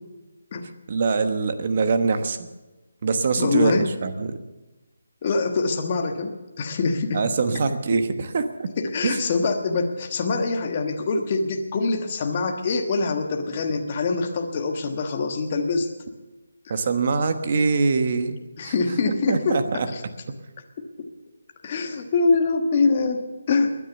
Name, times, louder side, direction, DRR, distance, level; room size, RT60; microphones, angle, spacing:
voice 1, 0.9-2.5 3.0-4.3 7.1-8.7 9.0-9.2 16.7-18.7 19.3-19.9, right 4 dB, 35° right, 9 dB, 1.1 m, -23 dB
voice 2, 3.4-3.9 5.2-7.2 8.8-15.9 16.7-16.8 18.6-20.0 21.0-21.1 21.6-23.7, left 4 dB, 25° left, 4 dB, 1.3 m, -24 dB
21.0 x 9.9 x 7.0 m, 1.1 s
hypercardioid pair, 175°, 0 cm